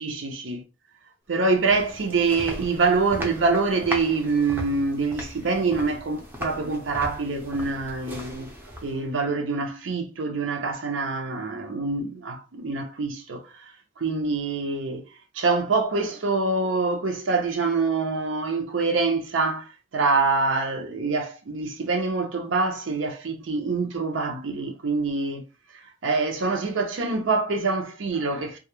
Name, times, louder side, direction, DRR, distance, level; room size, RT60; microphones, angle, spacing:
voice 1, 0.0-0.6 1.3-8.5 8.8-13.7 14.0-15.0 15.3-25.4 26.0-28.6, right 3 dB, 75° right, 0.6 m, -25 dB
sound 1, 1.4-9.2, equal, 10° right, 0.5 m, -38 dB
2.3 x 2.0 x 2.9 m
head